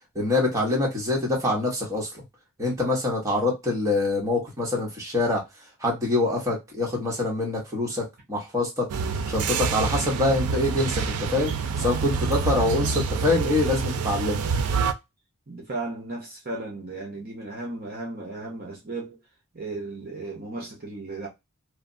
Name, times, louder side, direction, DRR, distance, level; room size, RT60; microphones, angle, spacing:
voice 1, 0.1-2.2 2.6-5.4 5.8-8.9 9.3-11.5 11.8-14.4, left 2 dB, 15° right, 0.9 m, -25 dB
sound 1, 8.9-14.9, right 5 dB, 80° right, 0.4 m, -27 dB
voice 2, 11.8-12.1 15.5-19.2 19.5-21.3, right 2 dB, 40° right, 0.7 m, -35 dB
3.2 x 2.0 x 2.5 m
head